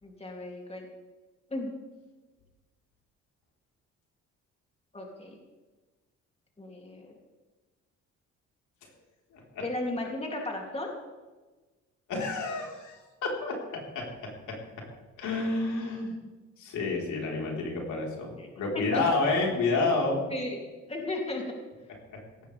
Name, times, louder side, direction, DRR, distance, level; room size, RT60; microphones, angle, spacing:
voice 1, 0.0-0.9 1.5-1.7 4.9-5.4 6.6-7.1 9.6-11.0 18.4-18.5 18.7-19.0 20.3-20.6 20.9-21.4, left 2 dB, 20° left, 0 dB, 2.9 m, -35 dB
voice 2, 9.3-9.6 12.1-14.9 15.2-16.1 16.6-20.2 22.1-22.2, left 3 dB, 75° left, -1 dB, 4.3 m, -30 dB
17.0 x 15.0 x 3.5 m, 1.2 s
cardioid pair, 90°, 30 cm